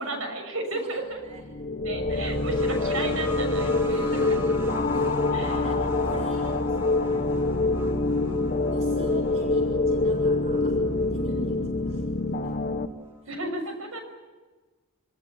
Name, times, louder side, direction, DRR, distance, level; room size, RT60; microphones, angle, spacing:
voice 1, 0.0-1.2 1.8-4.4 5.3-5.7 11.3-11.7 13.3-14.0, right 2 dB, 65° right, 5 dB, 6.7 m, -34 dB
voice 2, 0.7-1.4 3.8-7.3 8.7-10.8 11.1-11.6 11.9-12.1 12.4-12.6 13.2-13.4, right 1 dB, 30° right, -1 dB, 4.2 m, -46 dB
sound 1, 1.3-12.9, left 2 dB, 40° left, 1.6 m, -25 dB
sound 2, 2.1-11.4 12.5-12.6, equal, 10° right, 2.8 m, -40 dB
26.0 x 19.5 x 8.9 m, 1.3 s
head